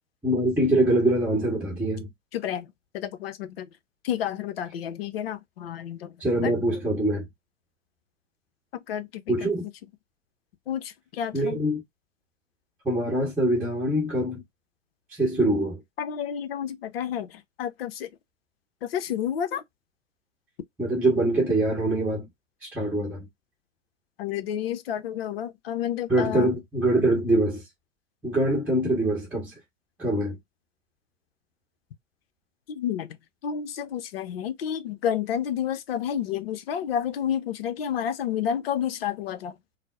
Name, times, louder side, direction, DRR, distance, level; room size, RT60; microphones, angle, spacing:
voice 1, 0.2-2.1 6.2-7.3 9.3-9.6 11.3-11.8 12.8-14.4 15.1-15.8 20.8-22.3 22.6-23.2 26.1-27.6 28.2-29.5 30.0-30.4, right 1 dB, 5° right, 1.1 m, -24 dB
voice 2, 2.3-2.7 2.9-3.7 4.0-6.1 6.4-6.5 8.7-9.5 10.7-11.6 16.0-18.1 18.8-19.6 24.2-26.5 32.7-33.2 33.4-39.6, left 9 dB, 50° left, 0.6 m, -30 dB
4.0 x 2.0 x 2.3 m
figure-of-eight pair, 110°, 37 cm